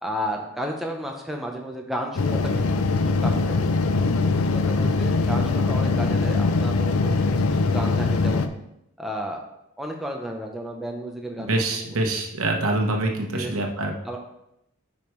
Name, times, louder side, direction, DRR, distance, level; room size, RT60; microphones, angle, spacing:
voice 1, 0.0-2.8 3.2-3.6 4.4-8.5 9.0-9.4 9.8-12.2 13.3-13.6 14.0-14.2, equal, ahead, 1 dB, 0.7 m, -33 dB
sound 1, 2.2-8.5, left 3 dB, 85° left, 0.5 m, -22 dB
voice 2, 11.4-13.9, right 2 dB, 80° right, 2 dB, 1.0 m, -25 dB
8.9 x 5.3 x 3.2 m, 0.82 s
head